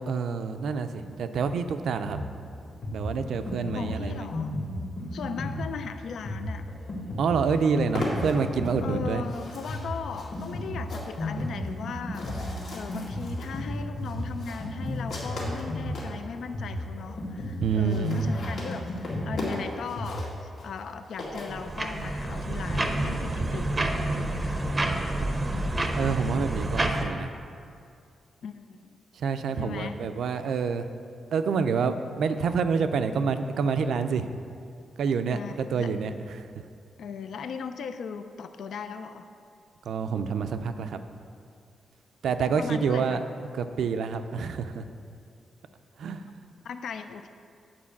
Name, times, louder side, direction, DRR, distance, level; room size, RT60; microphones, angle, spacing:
voice 1, 0.0-2.2 2.9-4.3 7.2-9.2 17.6-18.3 26.0-27.3 29.1-30.9 31.3-34.4 35.0-36.5 39.8-41.0 42.2-43.2 43.5-44.9 46.0-46.2, right 5 dB, 75° right, 9 dB, 0.4 m, -27 dB
Drum kit, 2.0-20.2, left 1 dB, 35° left, 1.2 m, -34 dB
voice 2, 3.7-4.5 5.1-6.7 8.8-12.3 12.7-24.7 25.5-25.6 28.4-29.0 29.6-30.0 35.3-35.9 37.0-39.3 42.4-43.2 46.6-47.3, left 6 dB, 65° left, 9 dB, 0.4 m, -38 dB
sound 1, 7.0-7.1 7.3-16.2 16.8-16.9 17.1-17.2 17.4-17.5 17.7-22.1, left 2 dB, 85° left, 2.2 m, -38 dB
sound 2, 21.3-27.0, right 1 dB, 15° right, 0.6 m, -28 dB
8.7 x 4.6 x 7.1 m, 2.4 s
wide cardioid pair, 165°, 0 cm